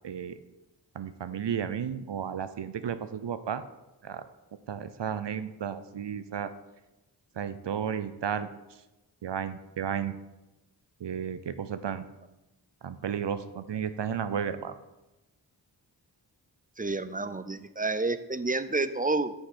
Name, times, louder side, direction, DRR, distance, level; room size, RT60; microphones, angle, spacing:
voice 1, 0.0-0.4 0.9-3.7 4.0-4.3 4.7-6.5 7.4-8.5 9.2-10.2 11.0-12.1 12.8-14.7, right 8 dB, 70° right, 12 dB, 0.6 m, -33 dB
voice 2, 16.8-19.3, right 3 dB, 20° right, 13 dB, 0.5 m, -29 dB
9.3 x 6.6 x 4.2 m, 1.0 s
wide cardioid pair, 50°, 44 cm